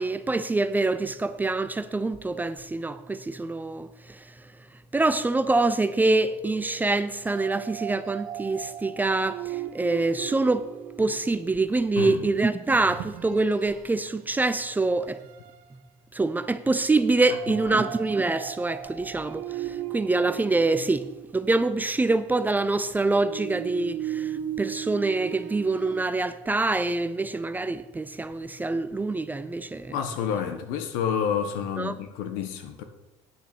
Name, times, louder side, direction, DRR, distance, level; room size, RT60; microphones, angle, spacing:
voice 1, 0.0-4.2 4.9-10.7 11.0-15.2 16.1-30.0 31.8-31.9, right 3 dB, 10° right, 0.4 m, -25 dB
sound 1, 6.3-11.6 12.7-13.9 14.4-14.6 15.1-15.6 17.3-21.7 23.0-26.1, right 11 dB, 70° right, 0.9 m, -37 dB
voice 2, 12.0-12.3 17.5-17.9 29.9-32.8, left 8 dB, 80° left, 1.3 m, -29 dB
9.6 x 6.7 x 6.1 m
supercardioid pair, 115°, 14 cm